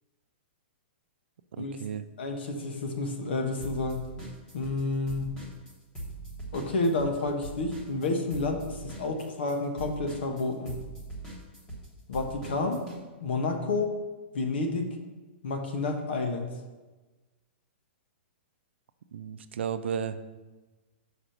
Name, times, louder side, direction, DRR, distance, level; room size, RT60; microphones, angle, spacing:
voice 1, 1.5-2.0 19.1-20.2, right 8 dB, 70° right, 10 dB, 0.5 m, -33 dB
voice 2, 2.2-4.1 4.5-5.3 6.5-10.7 12.1-12.8 13.2-14.0 14.3-15.0 15.4-16.5, left 3 dB, 60° left, 4 dB, 1.2 m, -30 dB
sound 1, 3.6-4.8 5.1-13.0, right 2 dB, 10° left, 1.3 m, -41 dB
6.5 x 4.9 x 5.8 m, 1.2 s
hypercardioid pair, 180°, 6 cm